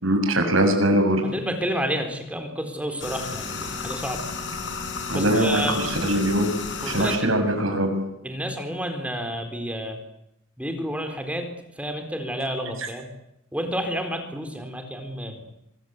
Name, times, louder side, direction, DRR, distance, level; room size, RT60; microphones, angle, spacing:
voice 1, 0.0-1.2 5.1-6.5 6.8-7.9, right 1 dB, 90° right, 5 dB, 7.1 m, -22 dB
voice 2, 1.2-4.2 5.1-5.9 6.8-7.3 8.2-10.0 10.6-11.5 11.8-13.1 13.5-15.4, equal, 5° right, 5 dB, 4.2 m, -30 dB
sound 1, 3.0-7.2, left 4 dB, 65° left, 5.3 m, -33 dB
25.5 x 22.0 x 8.2 m, 0.81 s
head